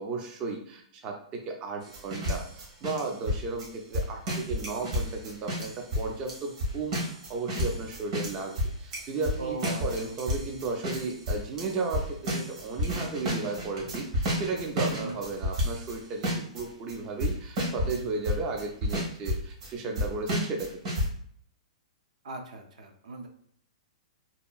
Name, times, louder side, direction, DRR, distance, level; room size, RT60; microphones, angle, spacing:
voice 1, 0.0-20.7, right 3 dB, 25° right, 2 dB, 0.3 m, -34 dB
sound 1, 1.8-16.0 16.2-16.6 16.9-17.0 17.2-18.0 18.2-19.7 20.0-21.1, equal, 50° right, 1.2 m, -31 dB
voice 2, 9.4-10.5 14.8-15.2 22.2-23.3, right 3 dB, 70° right, 4 dB, 0.6 m, -39 dB
2.8 x 2.5 x 2.3 m, 0.63 s
hypercardioid pair, 155°, 4 cm